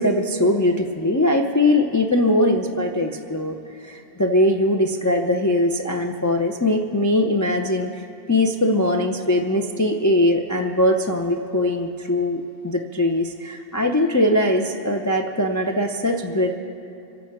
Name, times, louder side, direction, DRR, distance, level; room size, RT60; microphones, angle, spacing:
voice 1, 0.0-3.6 3.8-8.0 8.3-16.6, left 1 dB, 25° left, 2 dB, 0.3 m, -21 dB
25.0 x 8.6 x 4.7 m, 2.7 s
omnidirectional pair, 1.3 m